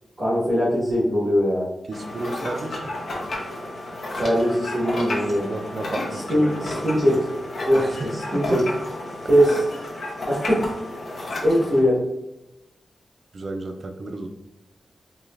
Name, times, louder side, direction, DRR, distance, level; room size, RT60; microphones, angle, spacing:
voice 1, 0.2-1.7 4.1-5.5 6.3-7.3 7.6-8.6 9.3-9.6 10.2-10.6 11.4-12.0, equal, 30° right, -8 dB, 1.5 m, -21 dB
sound 1, 1.9-11.8, left 1 dB, 70° left, 0.9 m, -32 dB
voice 2, 1.9-3.0 5.2-6.7 7.8-8.6 13.3-14.3, right 2 dB, 55° right, 6 dB, 0.5 m, -33 dB
4.7 x 2.8 x 2.5 m, 0.90 s
wide cardioid pair, 80°, 0 cm